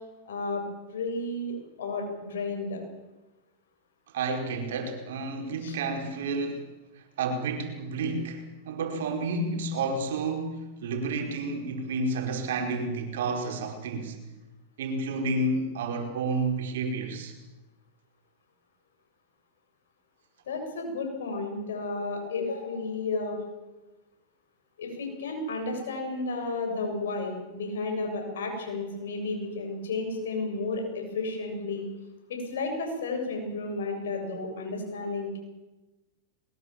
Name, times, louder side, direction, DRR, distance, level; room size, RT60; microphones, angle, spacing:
voice 1, 0.3-0.6 0.9-2.8 5.6-5.8 20.5-23.4 24.8-31.9 32.3-35.4, left 3 dB, 75° left, 3 dB, 7.2 m, -32 dB
voice 2, 4.1-6.6 7.2-14.2 14.8-17.3, right 3 dB, 70° right, 4 dB, 4.9 m, -30 dB
22.0 x 20.5 x 7.5 m, 1.1 s
hypercardioid pair, 100°, 0 cm